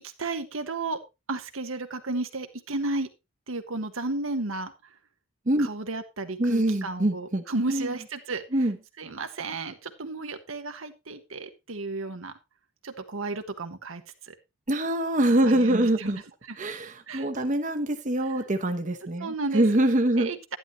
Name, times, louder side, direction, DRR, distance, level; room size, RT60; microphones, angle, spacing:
voice 1, 0.2-1.0 1.3-3.1 3.5-4.7 5.6-8.4 9.0-12.3 12.8-14.3 15.4-16.2 16.5-16.6 17.1-17.3 19.2-19.6 20.2-20.4, right 2 dB, 80° right, 1.3 m, -33 dB
voice 2, 6.4-7.4 7.7-7.9 8.5-8.8 14.7-16.2 16.6-20.3, right 1 dB, 40° right, 0.9 m, -24 dB
11.5 x 10.5 x 3.0 m
head